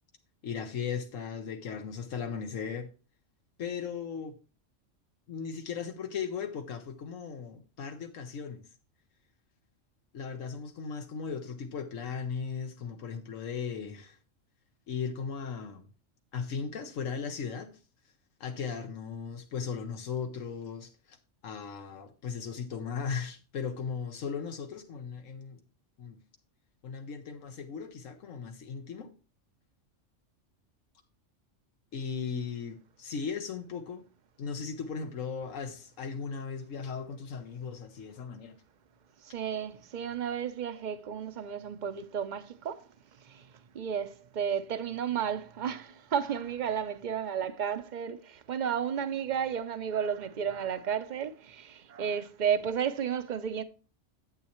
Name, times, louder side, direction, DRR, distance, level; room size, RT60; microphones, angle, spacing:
voice 1, 0.4-2.9 3.6-4.4 5.3-8.6 10.1-14.2 14.9-15.9 16.3-17.7 18.4-21.2 21.4-25.6 26.0-26.2 26.8-29.1 31.9-34.0 34.4-38.6, left 6 dB, 90° left, 1.3 m, -37 dB
voice 2, 39.2-42.9 43.2-43.5 43.7-53.6, right 8 dB, 45° right, 0.6 m, -33 dB
9.5 x 8.3 x 3.0 m
omnidirectional pair, 1.3 m